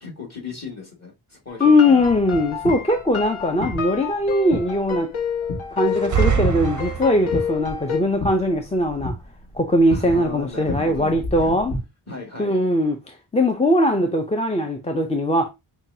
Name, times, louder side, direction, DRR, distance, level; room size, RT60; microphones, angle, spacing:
voice 1, 0.0-2.1 9.9-11.5 12.1-12.6, left 4 dB, 30° left, 1.8 m, -36 dB
sound 1, 1.5-8.0, left 6 dB, 75° left, 0.9 m, -29 dB
voice 2, 1.6-5.1 5.8-9.1 9.5-11.8 12.4-15.5, left 1 dB, 15° left, 0.4 m, -20 dB
sound 2, 2.0-11.8, left 1 dB, 55° left, 1.6 m, -34 dB
sound 3, 5.9-7.5, right 8 dB, 40° right, 0.5 m, -23 dB
5.6 x 2.3 x 2.6 m
wide cardioid pair, 110°, 49 cm